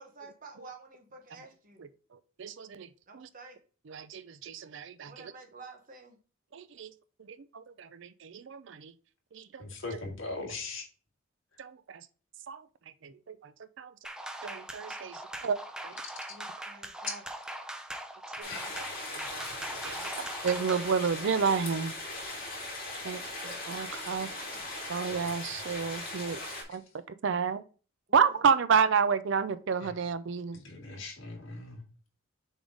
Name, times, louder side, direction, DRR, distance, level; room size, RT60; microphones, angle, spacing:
voice 1, 0.0-1.8 3.1-3.6 5.0-6.2 16.3-17.3 24.0-24.7 28.1-28.5, right 3 dB, 40° right, 1.2 m, -50 dB
voice 2, 2.4-2.9 3.1-3.3 3.9-5.1 6.5-6.9 7.5-8.9 9.3-9.6 11.6-11.7 12.5-12.6 13.0-13.3 13.8-13.9 14.4-15.6 15.8-15.9 18.4-18.5 19.3-19.4 19.8-20.0 20.4-21.9 23.0-24.3 24.9-26.4 26.7-26.8 27.2-27.6 28.1-30.6, right 6 dB, 60° right, 0.4 m, -30 dB
voice 3, 9.6-10.8 18.5-18.7 29.8-29.9 30.5-31.8, left 3 dB, 65° left, 1.8 m, -40 dB
sound 1, 14.0-20.9, right 1 dB, 5° right, 0.4 m, -41 dB
sound 2, 18.4-26.6, left 2 dB, 40° left, 2.6 m, -39 dB
7.0 x 3.6 x 3.7 m
head